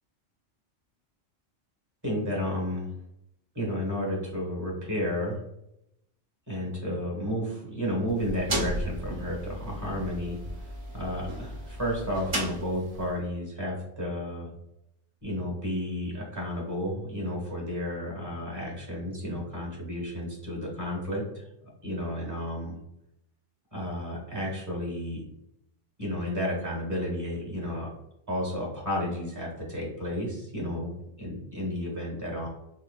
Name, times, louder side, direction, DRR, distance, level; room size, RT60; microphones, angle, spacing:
voice 1, 2.0-2.9 3.5-5.4 6.5-10.4 10.9-14.5 15.2-21.4 21.8-22.7 23.7-25.2 26.0-27.9 28.3-32.5, left 1 dB, 15° right, -2 dB, 1.2 m, -32 dB
sound 1, 8.1-13.2, right 1 dB, 35° right, 0.7 m, -35 dB
4.3 x 2.0 x 2.3 m, 0.81 s
omnidirectional pair, 1.2 m